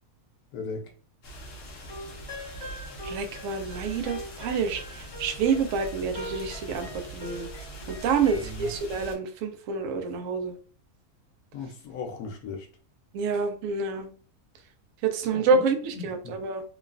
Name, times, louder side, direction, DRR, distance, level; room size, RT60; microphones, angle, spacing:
voice 1, 0.5-0.9 8.3-8.7 11.5-12.7 15.3-16.4, left 4 dB, 80° left, 1.1 m, -38 dB
sound 1, 1.2-9.2, right 1 dB, 55° left, 0.7 m, -42 dB
sound 2, 1.8-8.8, equal, 30° left, 1.5 m, -43 dB
voice 2, 3.0-10.5 13.1-14.1 15.0-16.6, right 5 dB, 70° right, 0.9 m, -28 dB
3.1 x 2.2 x 2.4 m
omnidirectional pair, 1.6 m